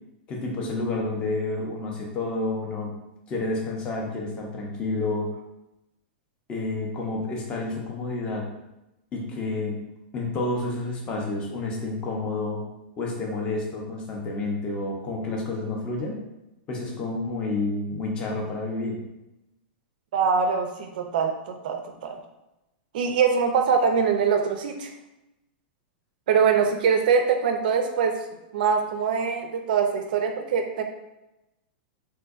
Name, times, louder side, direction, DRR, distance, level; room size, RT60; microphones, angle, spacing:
voice 1, 0.3-2.9 3.3-5.3 6.5-8.5 9.1-9.8 10.1-12.6 13.0-16.2 16.7-19.0, left 2 dB, 15° left, -1 dB, 0.5 m, -29 dB
voice 2, 20.1-22.2 22.9-24.9 26.3-28.2 28.5-30.8, right 6 dB, 55° right, 5 dB, 0.4 m, -23 dB
3.8 x 2.6 x 2.3 m, 0.94 s
supercardioid pair, 175°, 6 cm